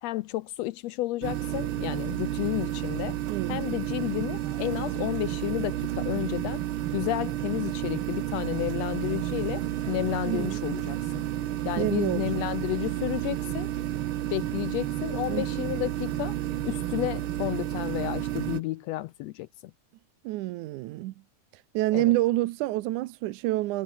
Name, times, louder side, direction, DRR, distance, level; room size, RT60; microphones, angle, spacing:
voice 1, 0.0-3.2 3.5-6.6 6.9-11.2 11.6-13.7 14.3-16.3 16.6-19.5 21.9-22.1, left 17 dB, 80° left, 1.5 m, -31 dB
sound 1, 1.2-18.6, right 13 dB, 70° right, 1.3 m, -31 dB
voice 2, 3.3-3.6 10.2-10.6 11.8-12.5 15.3-15.6 20.2-21.1 21.5-23.8, right 17 dB, 90° right, 2.2 m, -28 dB
sound 2, 4.3-6.9 8.0-19.1, right 4 dB, 50° right, 5.5 m, -54 dB
omnidirectional pair, 3.5 m